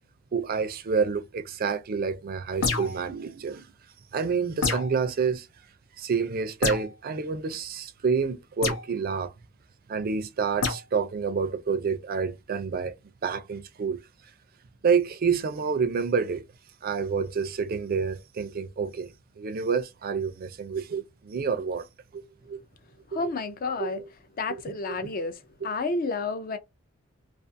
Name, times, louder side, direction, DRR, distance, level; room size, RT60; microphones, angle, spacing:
voice 1, 0.3-3.7 4.1-5.5 6.0-9.3 9.9-12.9 13.2-14.0 14.8-16.4 16.8-21.9 22.1-22.6 23.1-23.3 23.8-24.1 24.5-24.7 25.0-25.1, right 5 dB, 45° right, 0.4 m, -28 dB
sound 1, 2.6-3.1 4.6-5.0 6.6-6.9 8.6-8.9 10.6-10.8, left 4 dB, 85° left, 0.7 m, -27 dB
voice 2, 23.1-24.0 24.4-25.4 25.6-26.6, left 3 dB, 45° left, 0.4 m, -30 dB
2.4 x 2.4 x 2.6 m
head